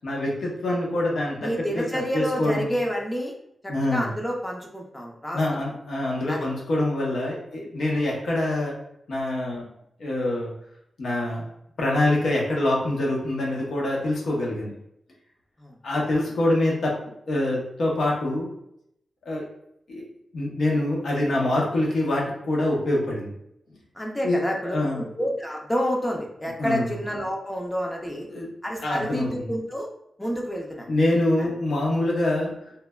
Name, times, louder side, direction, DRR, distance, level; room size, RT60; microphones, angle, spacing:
voice 1, 0.0-2.7 3.7-4.1 5.3-8.8 9.1-9.7 10.0-10.5 11.0-11.4 11.8-14.7 15.8-17.0 17.3-18.5 19.2-19.4 19.9-20.0 20.3-23.3 24.2-24.4 24.7-25.0 26.6-26.9 28.3-28.5 28.8-29.5 30.9-32.5, left 1 dB, 75° left, -3 dB, 0.8 m, -25 dB
voice 2, 1.4-3.3 3.6-5.6 6.3-6.5 15.6-15.7 16.1-16.2 24.0-28.3 28.6-29.9 30.2-30.9 31.4-31.5, equal, 10° left, 0 dB, 0.4 m, -29 dB
3.1 x 2.2 x 2.2 m, 0.75 s
wide cardioid pair, 145°, 0 cm